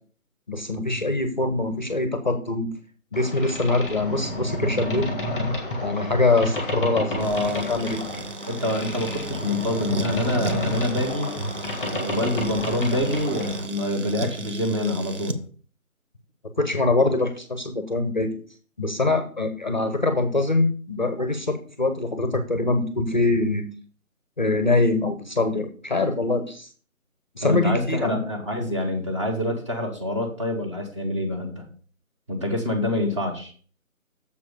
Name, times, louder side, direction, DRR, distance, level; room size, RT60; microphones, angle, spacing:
voice 1, 0.5-2.7 3.1-5.3 5.8-8.0 16.6-18.3 18.8-23.6 24.4-26.7 27.4-28.2, left 2 dB, 35° left, 9 dB, 0.7 m, -23 dB
Boat Water vehicle, 3.1-13.7, left 1 dB, ahead, 1.2 m, -31 dB
voice 2, 7.1-7.7 8.5-11.3 11.8-15.3 27.4-31.7 32.3-33.5, left 1 dB, 20° right, 1 dB, 1.2 m, -26 dB
sound 1, 7.2-15.4, right 1 dB, 55° right, 1.0 m, -35 dB
6.9 x 4.7 x 6.6 m, 0.42 s
figure-of-eight pair, 155°, 42 cm